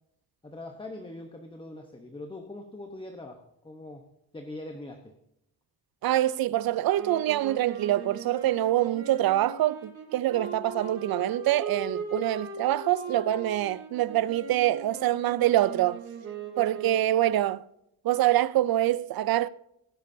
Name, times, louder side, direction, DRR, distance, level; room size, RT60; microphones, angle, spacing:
voice 1, 0.4-4.0 4.3-5.1, left 2 dB, 15° left, 0.9 m, -42 dB
voice 2, 6.0-16.0 16.6-17.6 18.0-19.5, right 14 dB, 65° right, 0.5 m, -25 dB
sound 1, 6.9-17.3, right 4 dB, 40° right, 4.0 m, -40 dB
18.5 x 10.5 x 2.7 m
wide cardioid pair, 160°, 39 cm